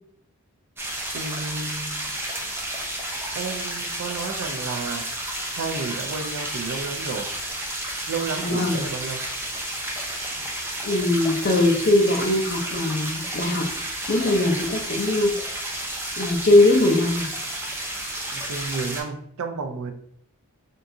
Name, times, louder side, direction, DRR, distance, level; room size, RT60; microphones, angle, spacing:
sound 1, 0.8-19.0, right 1 dB, 10° right, 0.6 m, -31 dB
voice 1, 1.1-2.1 3.4-5.1 5.5-7.3 8.1-9.3 18.3-19.9, right 4 dB, 85° right, 6 dB, 0.4 m, -32 dB
voice 2, 8.4-8.8 10.8-13.7 14.1-15.3 16.2-17.3, left 2 dB, 45° left, 2 dB, 0.6 m, -20 dB
3.5 x 2.6 x 2.6 m, 0.66 s
head